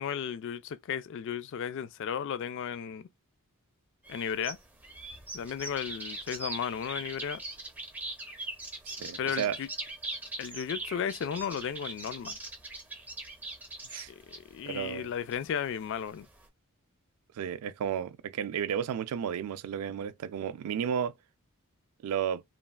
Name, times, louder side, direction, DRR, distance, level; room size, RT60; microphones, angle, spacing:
voice 1, 0.0-3.1 4.1-4.6 5.3-7.4 9.2-9.7 10.4-12.4 14.1-16.3, left 8 dB, 55° left, 0.3 m, -34 dB
sound 1, 4.0-16.5, right 2 dB, 10° right, 0.7 m, -41 dB
voice 2, 9.0-9.6 13.9-14.1 14.7-15.1 17.3-21.1 22.0-22.4, right 8 dB, 80° right, 0.3 m, -33 dB
3.1 x 2.3 x 2.3 m
head